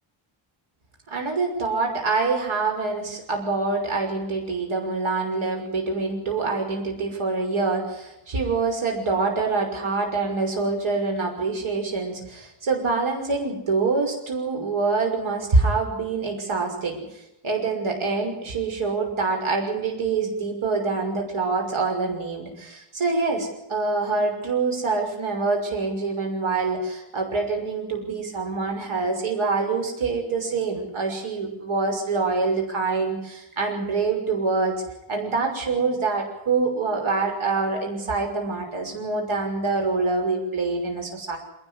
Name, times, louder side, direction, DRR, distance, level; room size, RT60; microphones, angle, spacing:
voice 1, 1.1-17.0 17.4-34.8 35.1-41.4, right 3 dB, 70° right, 2 dB, 6.2 m, -25 dB
26.5 x 12.5 x 10.0 m, 0.89 s
cardioid pair, 115°, 50 cm